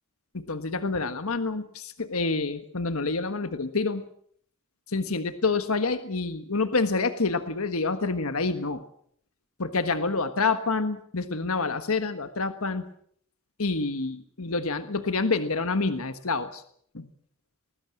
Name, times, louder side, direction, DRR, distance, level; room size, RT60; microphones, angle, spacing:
voice 1, 0.3-4.0 4.9-8.8 9.6-12.8 13.6-16.6 16.9-17.1, left 3 dB, 75° left, 9 dB, 1.5 m, -27 dB
20.5 x 19.5 x 7.7 m, 0.63 s
head